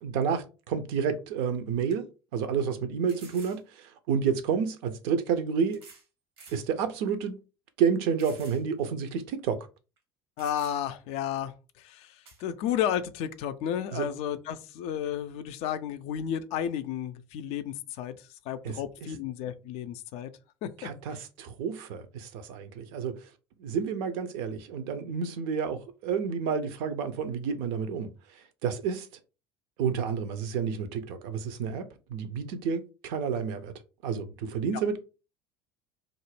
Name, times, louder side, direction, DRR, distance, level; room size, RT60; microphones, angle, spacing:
voice 1, 0.0-2.1 2.3-5.8 6.5-7.4 7.8-9.7 13.9-14.1 18.6-18.8 20.8-23.3 23.6-29.1 29.8-33.7 34.0-35.0, right 6 dB, 60° right, 0.5 m, -30 dB
sound 1, 1.3-1.4 1.9-2.0 3.1-3.6 4.7-4.8 5.7-6.1 6.4-6.6 7.2-7.3 8.2-8.6 9.0-9.1 10.0-10.1 10.4-11.0 12.2-12.4, right 4 dB, 75° right, 0.9 m, -51 dB
voice 2, 10.4-18.2 18.5-20.3 20.6-20.9, left 9 dB, 50° left, 0.4 m, -32 dB
2.4 x 2.1 x 3.2 m
figure-of-eight pair, 65°, 13 cm